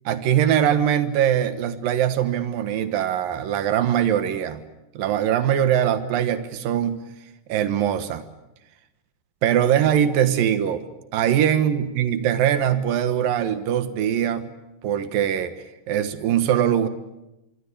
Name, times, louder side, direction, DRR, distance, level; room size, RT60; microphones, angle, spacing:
voice 1, 0.1-4.6 4.9-7.0 7.5-8.2 9.4-10.9 11.1-14.5 14.8-15.5 15.9-16.9, right 10 dB, 90° right, 10 dB, 3.1 m, -22 dB
26.0 x 24.0 x 8.6 m, 0.94 s
omnidirectional pair, 3.9 m